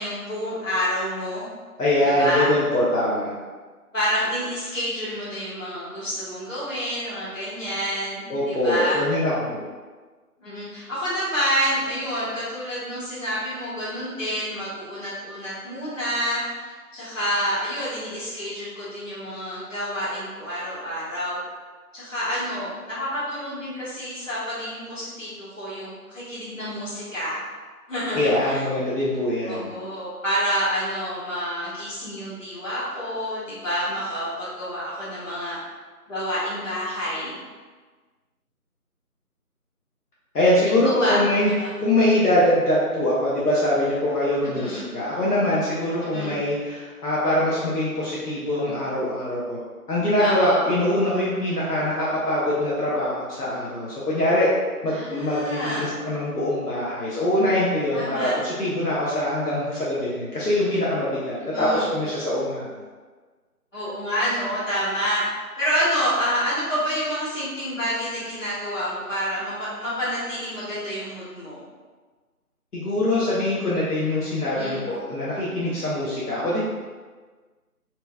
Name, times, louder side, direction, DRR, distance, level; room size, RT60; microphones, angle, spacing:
voice 1, 0.0-1.5 2.2-2.5 3.9-9.0 10.4-21.4 21.9-27.4 27.9-28.6 29.4-35.6 36.1-37.4 40.8-41.2 41.6-41.7 44.4-44.8 46.0-46.4 50.2-50.7 54.9-55.9 57.9-58.4 61.4-61.9 63.7-65.3 65.6-71.6 74.5-74.8, equal, 55° left, -9 dB, 1.4 m, -28 dB
voice 2, 1.8-3.3 8.3-9.6 28.1-29.7 40.3-41.5 41.8-49.6 49.9-54.5 54.8-62.7 72.7-76.6, left 1 dB, 80° left, -8 dB, 0.9 m, -23 dB
3.0 x 2.8 x 2.3 m, 1.4 s
figure-of-eight pair, 175°, 45 cm